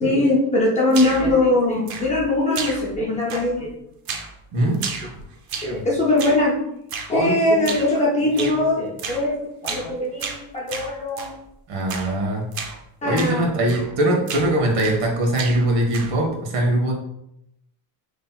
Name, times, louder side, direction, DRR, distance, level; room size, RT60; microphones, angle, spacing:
voice 1, 0.0-3.7 5.6-6.6 7.1-9.3 9.6-11.3 13.0-13.5, left 2 dB, 15° left, -5 dB, 0.4 m, -21 dB
sound 1, 0.9-1.4 1.9-2.3 2.5-3.0 3.3-3.7 4.1-4.4 4.7-5.8 6.2-6.5 6.9-7.1 7.6-7.9 8.4-8.6 9.0-9.3 9.6-9.9 10.2-11.4 11.9-12.2 12.5-12.8 13.2-13.4 13.7-14.0 14.3-15.1 15.3-16.2, right 5 dB, 45° right, 0.6 m, -32 dB
voice 2, 11.7-12.5 13.0-16.9, right 1 dB, 85° right, 0 dB, 1.4 m, -21 dB
5.5 x 3.2 x 2.2 m, 0.81 s
cardioid pair, 175°, 49 cm